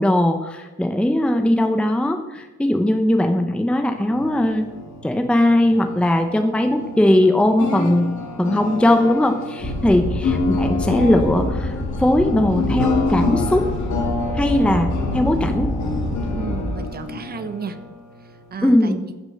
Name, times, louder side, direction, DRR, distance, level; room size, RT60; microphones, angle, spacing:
voice 1, 0.0-4.6 5.0-8.1 8.4-13.7 14.3-14.9 15.1-15.7 18.6-19.1, left 1 dB, 5° left, 5 dB, 0.8 m, -19 dB
sound 1, 4.0-18.7, left 3 dB, 65° left, 2.6 m, -28 dB
sound 2, 9.6-16.7, left 1 dB, 20° left, 2.6 m, -26 dB
voice 2, 16.3-17.8 18.2-19.0, right 5 dB, 30° right, 9 dB, 1.1 m, -33 dB
15.0 x 6.6 x 6.5 m, 1.2 s
cardioid pair, 155°, 31 cm